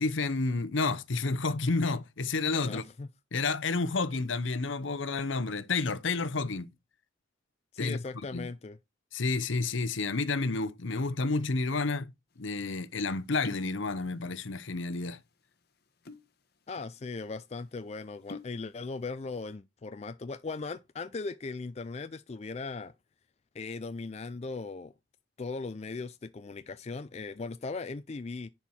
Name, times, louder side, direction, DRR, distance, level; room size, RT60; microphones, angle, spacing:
voice 1, 0.0-2.8 3.3-6.7 7.8-8.0 8.3-8.5 9.1-12.1 12.4-15.2, left 3 dB, 70° left, 0.8 m, -30 dB
voice 2, 2.6-3.1 7.7-8.8 16.7-22.9 23.5-24.9 25.4-28.5, left 3 dB, 30° left, 0.4 m, -38 dB
sound 1, 12.4-12.5 13.2-13.8 14.0-14.7 15.0-15.2 15.9-16.3 16.8-16.9 17.2-17.4 18.0-18.6 19.0-19.4, left 3 dB, 50° left, 1.1 m, -43 dB
11.0 x 4.6 x 4.3 m
head